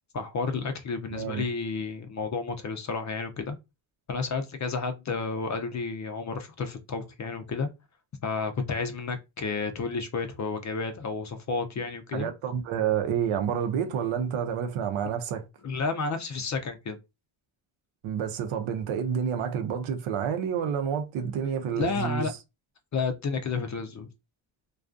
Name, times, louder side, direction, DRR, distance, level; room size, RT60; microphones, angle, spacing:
voice 1, 0.1-3.6 4.1-7.7 8.2-12.3 15.6-17.0 21.7-22.3 22.9-24.1, left 4 dB, 40° left, 0.5 m, -31 dB
voice 2, 1.1-1.5 12.1-15.5 18.0-22.3, right 8 dB, 85° right, 0.7 m, -29 dB
2.4 x 2.3 x 2.4 m
cardioid pair, 95°, 48 cm